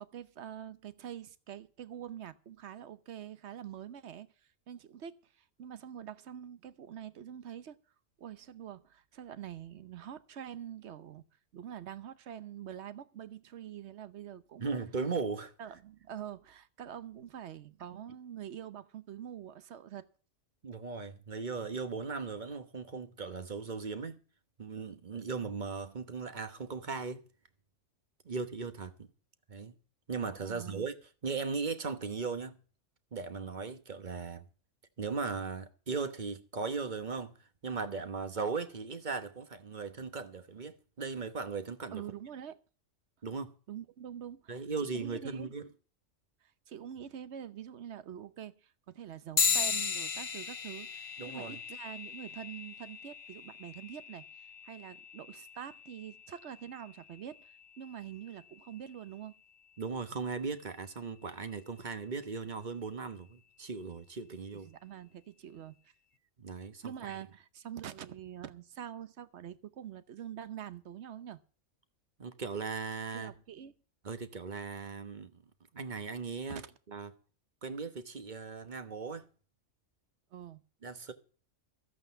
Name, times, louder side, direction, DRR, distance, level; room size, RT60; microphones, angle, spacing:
voice 1, 0.0-4.3 4.7-7.8 8.2-11.2 11.5-14.7 15.6-20.1 30.4-30.9 41.9-42.6 43.7-45.5 46.7-59.4 64.6-65.8 66.8-71.4 73.1-73.7 76.5-76.7 80.3-80.6, right 9 dB, 60° right, 1.1 m, -45 dB
voice 2, 14.6-15.5 17.9-18.0 20.6-24.2 24.6-27.2 28.2-29.1 29.5-29.7 30.1-30.9 31.2-32.6 33.1-34.5 35.0-42.0 43.2-43.5 44.5-45.7 51.2-51.6 59.8-64.7 66.4-67.2 72.2-73.3 74.0-75.4 75.7-77.1 77.6-79.3 80.8-81.1, right 4 dB, 40° right, 1.2 m, -38 dB
sound 1, 49.4-59.2, left 5 dB, 35° left, 0.6 m, -37 dB
13.5 x 8.4 x 6.9 m
omnidirectional pair, 1.3 m